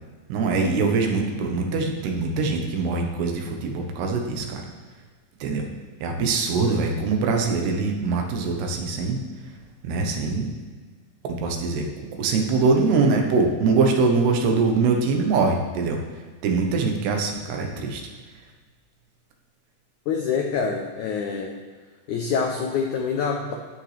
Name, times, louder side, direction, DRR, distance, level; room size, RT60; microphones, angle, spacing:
voice 1, 0.3-4.7 5.4-5.7 6.0-9.2 9.8-10.5 11.2-16.0 16.4-18.0, right 4 dB, 85° right, 3 dB, 3.3 m, -23 dB
voice 2, 20.1-21.6 22.1-23.5, left 6 dB, 90° left, 2 dB, 1.7 m, -26 dB
12.5 x 10.0 x 3.4 m, 1.5 s
omnidirectional pair, 4.6 m